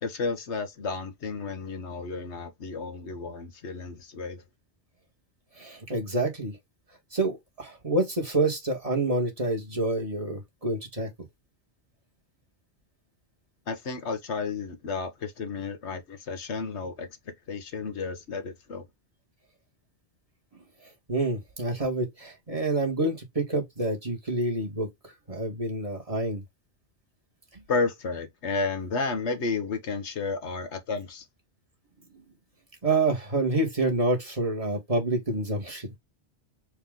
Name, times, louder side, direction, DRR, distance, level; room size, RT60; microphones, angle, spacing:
voice 1, 0.0-4.4 13.7-17.1 17.5-18.8 27.7-31.3, left 4 dB, 75° left, 1.4 m, -32 dB
voice 2, 5.6-6.6 7.1-11.1 21.1-26.4 27.5-27.6 32.8-35.9, right 2 dB, 30° right, 1.9 m, -28 dB
4.7 x 2.9 x 3.7 m
omnidirectional pair, 1.1 m